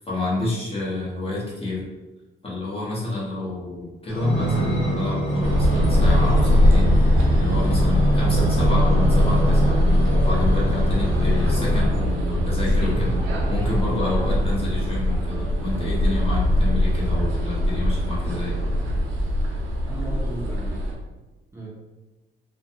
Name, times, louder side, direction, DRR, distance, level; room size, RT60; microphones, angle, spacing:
voice 1, 0.0-1.8 2.4-7.0 7.4-9.8 10.2-13.2 13.5-18.6, left 2 dB, 30° left, -6 dB, 1.0 m, -29 dB
sound 1, 4.1-12.1 12.7-13.9 14.5-14.6, right 1 dB, 65° left, 1.0 m, -25 dB
sound 2, 5.4-20.9, left 1 dB, 90° right, 0.6 m, -21 dB
voice 2, 19.8-20.9 21.5-21.7, right 1 dB, 15° right, -6 dB, 0.6 m, -36 dB
2.4 x 2.2 x 2.8 m, 1.1 s
cardioid pair, 90°, 20 cm